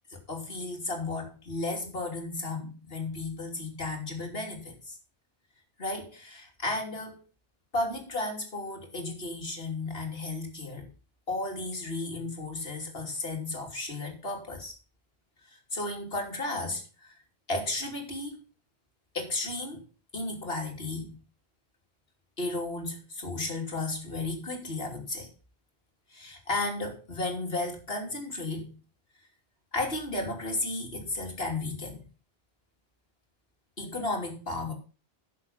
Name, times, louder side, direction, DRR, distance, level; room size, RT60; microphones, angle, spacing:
voice 1, 0.1-5.0 5.8-7.2 7.7-10.9 11.3-14.7 15.5-17.1 17.5-18.4 19.1-19.8 20.1-21.2 22.4-25.3 26.1-28.8 29.7-32.0 33.8-34.7, left 2 dB, 70° left, 2 dB, 3.3 m, -34 dB
11.0 x 6.9 x 5.7 m, 0.35 s
omnidirectional pair, 1.1 m